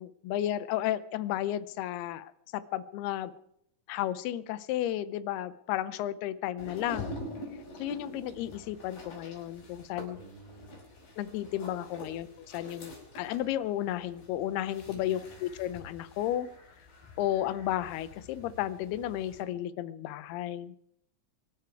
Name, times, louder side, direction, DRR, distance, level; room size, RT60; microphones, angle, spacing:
voice 1, 0.0-3.3 3.9-7.2 7.8-10.2 11.2-16.5 17.2-20.8, left 12 dB, 85° left, 15 dB, 2.7 m, -33 dB
sound 1, 6.6-19.4, left 1 dB, 65° left, 6.7 m, -46 dB
voice 2, 10.1-10.8 11.9-12.2 14.8-15.4, right 3 dB, 35° right, 2 dB, 3.2 m, -52 dB
24.0 x 11.5 x 4.6 m, 0.75 s
omnidirectional pair, 4.5 m